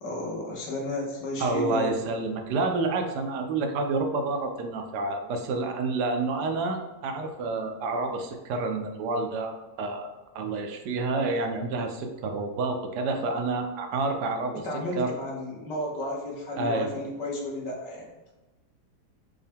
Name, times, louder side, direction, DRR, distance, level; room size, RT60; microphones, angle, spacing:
voice 1, 0.0-1.9 14.6-18.3, left 1 dB, 90° left, -3 dB, 1.7 m, -33 dB
voice 2, 1.4-15.1 16.6-16.9, right 3 dB, 80° right, 4 dB, 1.2 m, -29 dB
5.5 x 2.2 x 3.4 m, 1.1 s
omnidirectional pair, 1.8 m